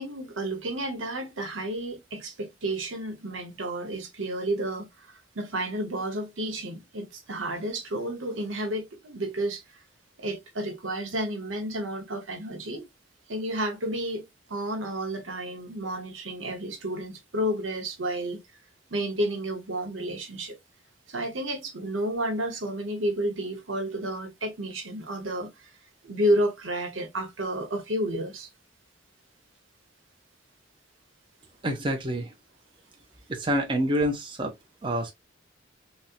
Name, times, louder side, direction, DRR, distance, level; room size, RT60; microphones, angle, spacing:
voice 1, 0.0-9.8 10.2-12.9 13.3-14.2 14.5-18.4 18.9-20.6 21.1-25.7 26.0-28.5, right 1 dB, 80° right, 1.0 m, -31 dB
voice 2, 31.6-32.3 33.3-34.5 34.8-35.1, right 1 dB, 25° right, 0.6 m, -27 dB
4.2 x 2.1 x 2.4 m
head